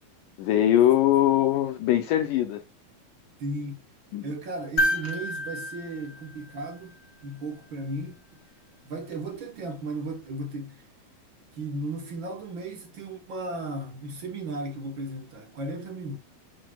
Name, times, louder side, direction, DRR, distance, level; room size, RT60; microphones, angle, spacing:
voice 1, 0.4-2.6 4.1-4.3, left 12 dB, 80° left, 2.0 m, -21 dB
voice 2, 3.4-3.8 4.2-6.9 7.2-8.4 8.8-10.8 11.5-16.2, right 2 dB, 70° right, 1.1 m, -35 dB
sound 1, 4.8-7.1 9.1-9.2, equal, 45° left, 1.3 m, -30 dB
11.0 x 4.0 x 2.3 m
omnidirectional pair, 4.3 m